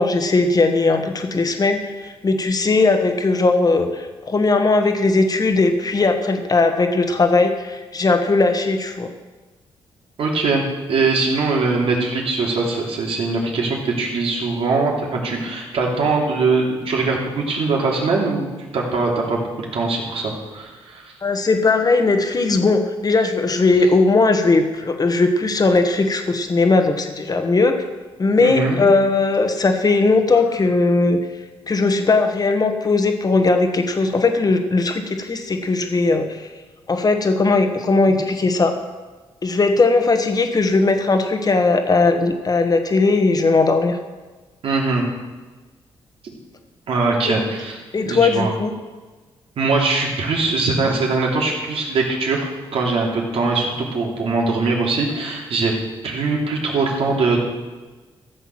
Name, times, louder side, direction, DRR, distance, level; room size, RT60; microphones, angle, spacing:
voice 1, 0.0-9.1 21.2-27.8 28.2-31.2 31.7-36.5 36.9-38.7 39.4-44.0 47.3-47.4 47.9-48.7, left 3 dB, 40° left, 6 dB, 1.6 m, -18 dB
voice 2, 10.2-10.6 10.9-18.4 18.7-21.1 28.4-28.8 44.6-45.0 46.9-47.8 48.1-48.5 49.6-55.7 56.0-57.4, right 3 dB, 70° right, -2 dB, 3.2 m, -21 dB
14.5 x 7.0 x 6.1 m, 1.3 s
cardioid pair, 65°, 10 cm